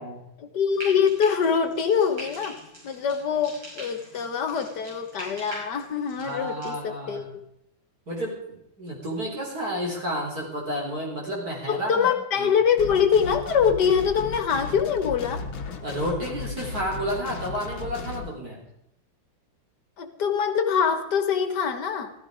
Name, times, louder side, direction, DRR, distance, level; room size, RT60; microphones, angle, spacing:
voice 1, 0.4-7.4 11.7-15.5 20.0-22.1, left 7 dB, 60° left, 7 dB, 1.9 m, -24 dB
Frying (food), 0.7-6.7, right 1 dB, 80° right, 7.2 m, -43 dB
voice 2, 6.2-7.2 8.1-12.1 12.4-12.5 15.8-18.6, equal, 50° right, -2 dB, 4.3 m, -31 dB
sound 1, 12.8-18.3, left 4 dB, 90° left, 2.1 m, -35 dB
15.0 x 14.0 x 5.0 m, 0.78 s
omnidirectional pair, 2.1 m